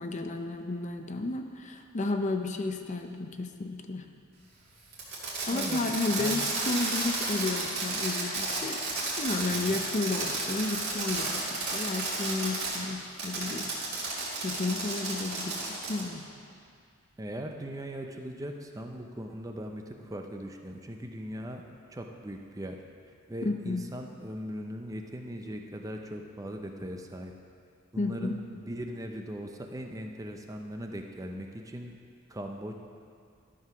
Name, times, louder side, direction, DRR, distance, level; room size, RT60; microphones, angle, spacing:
voice 1, 0.0-4.1 5.5-8.8 9.2-13.7 14.4-16.2 23.4-23.9 28.0-28.4, left 3 dB, 35° left, 5 dB, 0.5 m, -32 dB
Fireworks, 4.9-12.8 13.2-16.1, right 3 dB, 55° right, 2.4 m, -32 dB
voice 2, 5.5-5.8 6.2-6.5 9.5-9.8 17.2-21.6 21.9-22.8 23.3-27.3 27.9-32.0 32.3-32.8, equal, 15° right, 3 dB, 0.5 m, -39 dB
12.5 x 4.8 x 6.0 m, 2.3 s
head